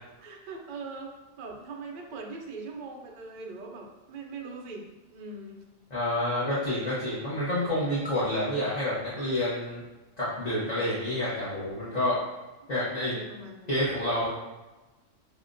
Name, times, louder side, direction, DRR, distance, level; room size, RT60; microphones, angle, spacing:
voice 1, 0.2-1.1 1.4-5.6 11.9-12.3 12.9-13.8, right 3 dB, 65° right, 1 dB, 0.4 m, -41 dB
voice 2, 5.9-9.8 10.2-12.1 12.7-13.2 13.7-14.3, left 1 dB, 35° left, -10 dB, 0.8 m, -28 dB
5.3 x 2.1 x 2.5 m, 1.1 s
omnidirectional pair, 1.4 m